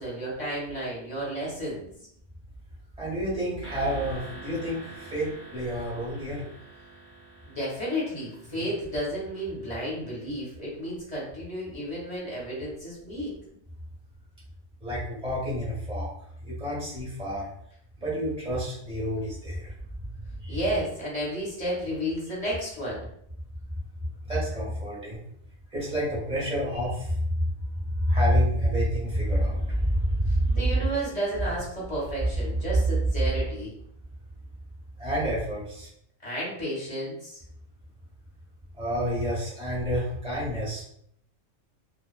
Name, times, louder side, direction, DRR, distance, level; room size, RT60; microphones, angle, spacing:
voice 1, 0.0-1.9 7.5-13.3 20.5-23.1 30.3-33.7 36.2-37.4, equal, 35° left, -5 dB, 0.7 m, -32 dB
voice 2, 3.0-6.4 14.8-16.1 16.4-17.5 18.0-19.7 20.4-20.6 24.3-25.2 25.7-27.4 27.9-30.9 32.4-32.8 35.0-35.9 38.7-40.8, equal, 5° right, -7 dB, 0.8 m, -28 dB
sound 1, 3.6-10.0, right 3 dB, 45° right, 0.8 m, -47 dB
2.4 x 2.2 x 2.3 m, 0.68 s
omnidirectional pair, 1.4 m